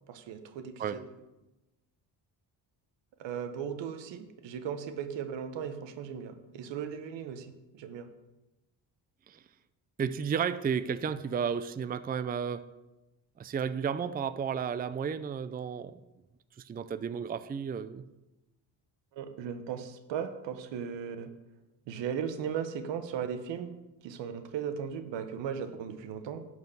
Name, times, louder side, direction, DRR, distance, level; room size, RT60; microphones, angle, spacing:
voice 1, 0.1-1.0 3.2-8.1 19.1-21.3 21.9-23.7 24.0-26.4, right 7 dB, 80° right, 9 dB, 1.2 m, -37 dB
voice 2, 10.0-12.7 13.4-15.9 16.6-18.0, right 7 dB, 20° right, 13 dB, 0.4 m, -32 dB
11.5 x 4.8 x 8.0 m, 1.0 s
cardioid pair, 90°, 43 cm